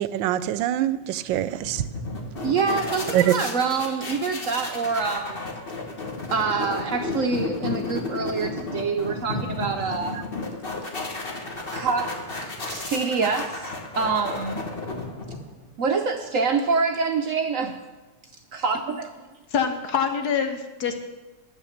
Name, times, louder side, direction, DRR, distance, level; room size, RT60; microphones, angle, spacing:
voice 1, 0.0-1.8 3.1-3.3 12.7-12.8, right 13 dB, 90° right, 14 dB, 1.3 m, -24 dB
sound 1, 1.3-15.7, left 3 dB, 35° left, 1.4 m, -33 dB
voice 2, 2.4-5.4 6.3-10.2 11.7-12.3 12.7-14.6 15.8-17.8 18.5-19.1, right 5 dB, 65° right, 5 dB, 0.8 m, -26 dB
voice 3, 19.5-21.0, left 7 dB, 65° left, 6 dB, 1.5 m, -25 dB
10.5 x 7.4 x 7.2 m, 1.2 s
omnidirectional pair, 2.0 m